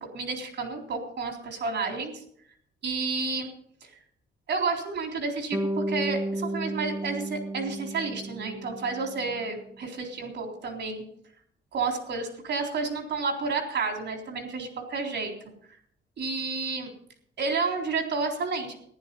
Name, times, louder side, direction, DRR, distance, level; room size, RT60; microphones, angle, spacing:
voice 1, 0.1-2.2 2.8-3.5 3.8-3.9 4.5-11.0 11.7-15.3 15.7-15.8 16.2-16.9 17.4-18.8, right 4 dB, 60° right, 3 dB, 3.9 m, -30 dB
Bass guitar, 5.5-9.6, right 1 dB, 15° right, 1.5 m, -33 dB
15.5 x 10.5 x 5.4 m, 0.66 s
cardioid pair, 90°, 20 cm